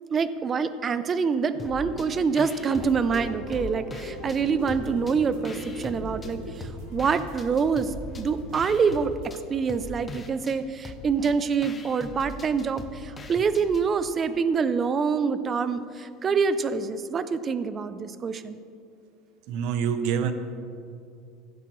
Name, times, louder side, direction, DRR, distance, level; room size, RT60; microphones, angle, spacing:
voice 1, 0.1-18.6, right 5 dB, 25° right, 13 dB, 0.4 m, -26 dB
sound 1, 1.5-6.5, left 1 dB, 65° left, 2.6 m, -40 dB
sound 2, 1.6-2.1 2.4-4.4 4.7-6.3 6.6-13.9, left 2 dB, 15° left, 0.7 m, -41 dB
sound 3, 2.7-3.4 3.6-9.4, right 1 dB, 85° right, 2.1 m, -44 dB
voice 2, 19.5-20.3, right 7 dB, 60° right, 10 dB, 0.7 m, -26 dB
16.0 x 8.0 x 3.1 m, 2.5 s
cardioid pair, 155°, 0 cm